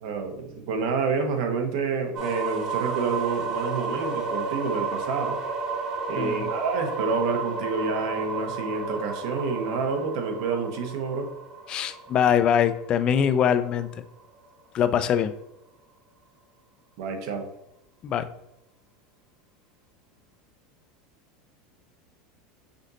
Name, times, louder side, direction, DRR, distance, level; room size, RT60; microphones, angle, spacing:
voice 1, 0.0-5.4 6.1-11.3 17.0-17.5, right 4 dB, 65° right, 5 dB, 0.9 m, -28 dB
sound 1, 2.1-13.9, right 4 dB, 35° right, 1.1 m, -32 dB
voice 2, 11.7-13.9 14.7-15.3 18.0-18.2, left 8 dB, 30° left, 11 dB, 0.3 m, -22 dB
5.1 x 2.6 x 3.8 m, 0.85 s
supercardioid pair, 150°, 3 cm